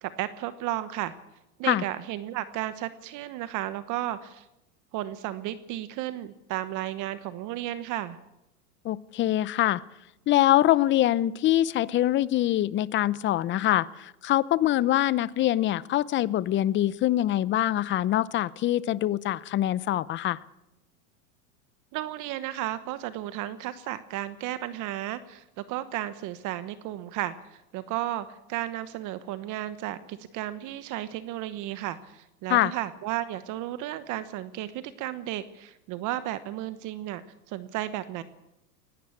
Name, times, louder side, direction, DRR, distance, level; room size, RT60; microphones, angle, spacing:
voice 1, 0.0-1.1 1.6-4.5 4.9-8.2 21.9-38.2, right 13 dB, 40° right, 13 dB, 1.1 m, -33 dB
voice 2, 8.8-9.8 10.3-20.4 32.5-32.7, left 13 dB, 25° left, 19 dB, 0.7 m, -24 dB
20.0 x 17.0 x 8.7 m, 0.92 s
hypercardioid pair, 125°, 47 cm